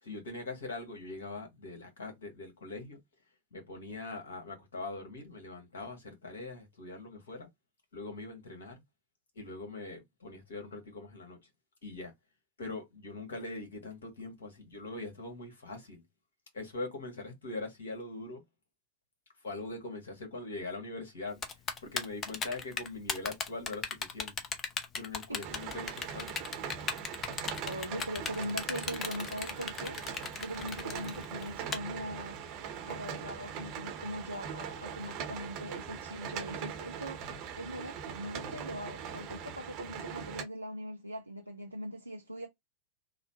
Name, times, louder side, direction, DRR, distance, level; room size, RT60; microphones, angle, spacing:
voice 1, 0.0-3.0 3.5-7.5 7.9-8.7 9.3-11.4 11.8-12.1 12.6-16.0 16.5-18.4 19.4-21.4 21.8-24.3 24.9-26.4, left 2 dB, 65° left, 1.5 m, -42 dB
Typing, 21.4-31.8, left 5 dB, 25° left, 0.6 m, -36 dB
sound 1, 25.4-40.4, right 7 dB, 40° right, 0.8 m, -41 dB
voice 2, 27.6-30.0 30.4-32.4 32.8-37.2 37.6-42.5, equal, 85° right, 0.5 m, -41 dB
3.8 x 2.1 x 2.8 m
figure-of-eight pair, 90°, 0 cm